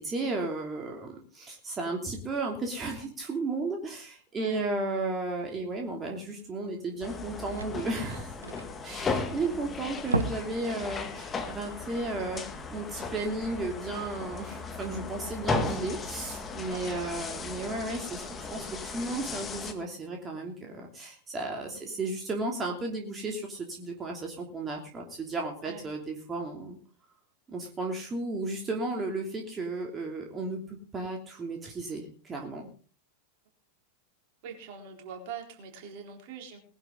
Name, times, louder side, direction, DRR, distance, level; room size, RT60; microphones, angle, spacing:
voice 1, 0.0-8.3 8.8-12.4 12.7-26.8 27.5-32.7, right 2 dB, 20° right, 1 dB, 3.0 m, -34 dB
voice 2, 4.3-4.7 12.3-12.4 16.7-17.1 21.7-22.0 25.6-25.9 34.4-36.6, right 7 dB, 50° right, 3 dB, 4.0 m, -43 dB
sound 1, 6.5-6.6 6.9-7.0 7.2-9.5 9.9-10.6 11.0-11.1 11.6-11.7, right 3 dB, 75° right, 1.2 m, -34 dB
sound 2, 7.0-19.7, left 3 dB, 20° left, 2.0 m, -36 dB
20.0 x 11.5 x 3.9 m, 0.40 s
figure-of-eight pair, 90°, 0 cm